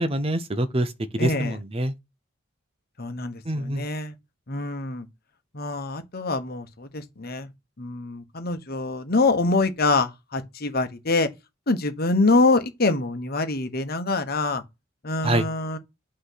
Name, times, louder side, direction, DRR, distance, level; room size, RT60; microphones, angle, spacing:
voice 1, 0.0-1.9 3.4-3.9 15.2-15.5, right 1 dB, 30° right, 0.7 m, -25 dB
voice 2, 1.2-1.5 3.0-4.1 4.5-5.1 5.5-7.5 7.8-11.3 11.7-14.6 15.0-15.8, left 3 dB, 50° left, 1.2 m, -25 dB
5.9 x 3.2 x 5.7 m
head